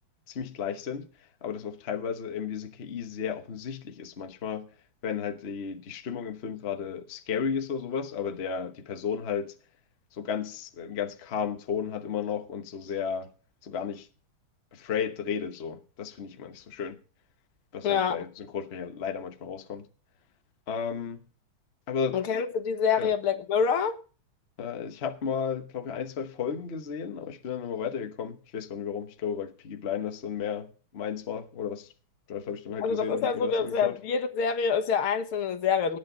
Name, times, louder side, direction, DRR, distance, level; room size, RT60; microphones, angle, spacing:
voice 1, 0.3-4.7 5.0-9.6 10.1-13.3 13.6-14.1 14.7-17.0 17.7-19.9 20.7-21.2 21.9-22.2 23.0-23.1 24.6-31.9 32.3-34.0, left 7 dB, 40° left, 1.0 m, -33 dB
voice 2, 17.8-18.2 22.1-24.0 32.8-36.0, left 6 dB, 75° left, 2.2 m, -26 dB
18.5 x 8.8 x 3.9 m
omnidirectional pair, 2.4 m